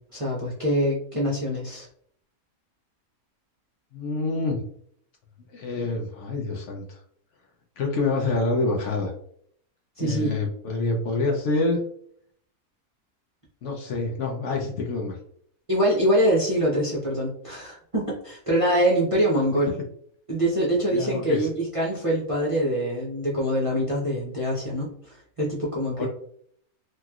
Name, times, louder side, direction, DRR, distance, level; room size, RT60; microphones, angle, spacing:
voice 1, 0.1-1.9 10.0-10.3 15.7-19.7 20.3-26.1, equal, 35° right, -6 dB, 0.6 m, -24 dB
voice 2, 3.9-4.6 5.5-7.0 7.8-9.1 10.0-11.8 13.6-15.2 20.9-21.5 25.9-26.1, left 3 dB, 65° left, 1 dB, 0.8 m, -27 dB
2.9 x 2.9 x 2.3 m, 0.63 s
omnidirectional pair, 1.5 m